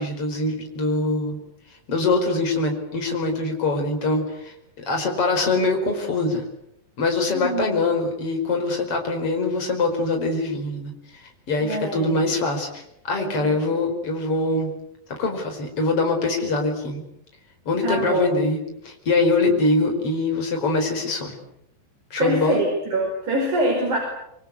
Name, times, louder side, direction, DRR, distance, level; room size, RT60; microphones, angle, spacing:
voice 1, 0.0-1.4 1.9-6.5 7.0-14.7 15.1-17.0 17.7-21.4 22.1-22.6, left 2 dB, 40° left, 4 dB, 5.6 m, -23 dB
voice 2, 7.3-7.8 11.6-12.2 13.2-13.8 17.8-18.3 22.2-24.0, right 1 dB, 55° right, 1 dB, 6.4 m, -25 dB
26.5 x 24.0 x 8.4 m, 0.80 s
omnidirectional pair, 4.2 m